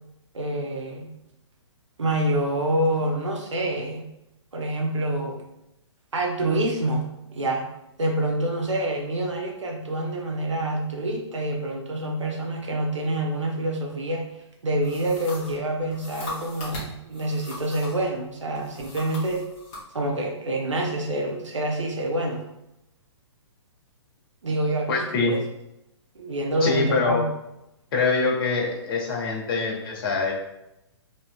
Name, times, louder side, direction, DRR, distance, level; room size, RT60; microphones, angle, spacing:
voice 1, 0.3-1.1 2.0-4.0 4.5-5.4 6.1-7.0 7.3-7.6 8.0-14.2 14.6-19.4 19.9-22.4 24.4-25.4 26.1-27.2, right 1 dB, 90° right, -1 dB, 0.8 m, -27 dB
sound 1, 14.8-18.1 18.5-19.9, left 2 dB, 30° left, 1.5 m, -40 dB
voice 2, 24.9-25.4 26.6-27.2 27.9-30.3, left 3 dB, 50° left, 0 dB, 1.1 m, -24 dB
4.2 x 3.0 x 2.2 m, 0.87 s
hypercardioid pair, 130°, 15 cm